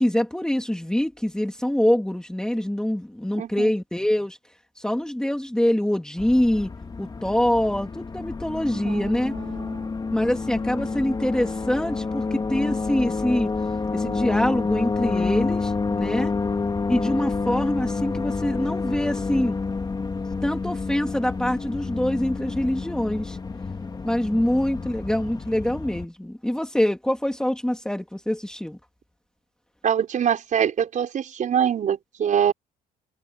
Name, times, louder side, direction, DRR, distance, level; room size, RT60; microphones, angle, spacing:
voice 1, 0.0-4.4 4.8-6.7 7.0-9.3 10.1-13.5 13.9-16.3 16.9-19.6 20.4-23.4 24.0-28.8, left 1 dB, 5° left, 3.0 m, -24 dB
voice 2, 3.3-3.7 8.8-9.9 29.8-32.5, right 8 dB, 50° right, 5.6 m, -24 dB
sound 1, 6.2-26.1, left 4 dB, 25° left, 3.1 m, -29 dB
cardioid pair, 110°, 17 cm